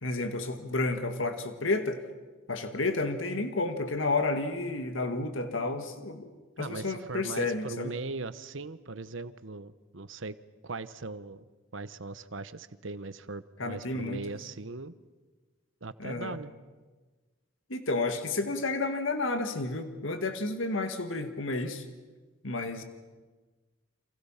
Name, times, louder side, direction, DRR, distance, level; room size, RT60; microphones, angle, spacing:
voice 1, 0.0-2.0 2.5-6.3 6.6-7.9 13.6-14.2 16.0-16.4 17.7-21.8 22.4-22.8, left 3 dB, 80° left, 7 dB, 2.0 m, -31 dB
voice 2, 6.6-10.4 10.6-11.4 11.7-14.9 15.8-16.5, right 3 dB, 75° right, 13 dB, 1.1 m, -39 dB
30.0 x 28.0 x 5.8 m, 1.3 s
head